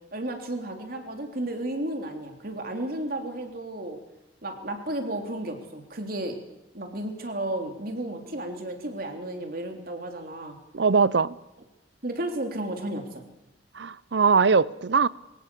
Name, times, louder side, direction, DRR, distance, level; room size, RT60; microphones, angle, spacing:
voice 1, 0.1-4.0 4.4-6.4 6.7-10.6 12.0-13.2, right 1 dB, 55° right, 3.3 m, -33 dB
voice 2, 10.7-11.4 13.7-15.1, right 5 dB, 70° right, 0.7 m, -21 dB
24.5 x 17.0 x 7.0 m
head